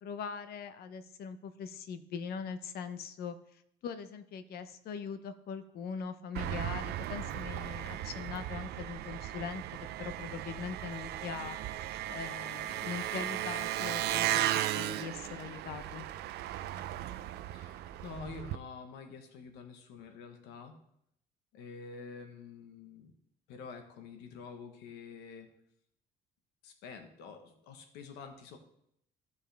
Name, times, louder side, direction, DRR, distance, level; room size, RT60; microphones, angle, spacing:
voice 1, 0.0-9.6 10.0-14.5 14.7-16.1, left 6 dB, 65° left, 11 dB, 0.9 m, -41 dB
Engine, 6.3-18.6, right 13 dB, 75° right, 0.5 m, -36 dB
voice 2, 17.5-20.7 21.5-23.1 23.5-25.5 26.6-28.6, left 5 dB, 90° left, 5 dB, 1.2 m, -47 dB
15.5 x 5.4 x 3.4 m, 0.73 s
cardioid pair, 110°, 17 cm